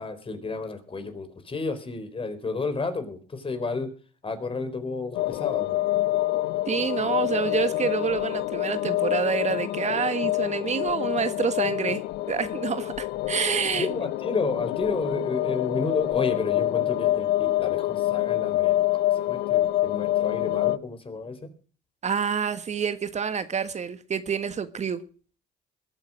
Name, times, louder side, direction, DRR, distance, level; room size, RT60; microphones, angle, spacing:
voice 1, 0.0-3.9 4.2-5.8 13.8-21.5, left 3 dB, 30° left, 4.2 m, -31 dB
sound 1, 5.1-20.8, left 16 dB, 75° left, 0.7 m, -26 dB
voice 2, 6.7-12.0 12.3-13.9 22.0-25.0, right 6 dB, 40° right, 1.6 m, -27 dB
21.5 x 8.2 x 6.4 m
supercardioid pair, 70°, 17 cm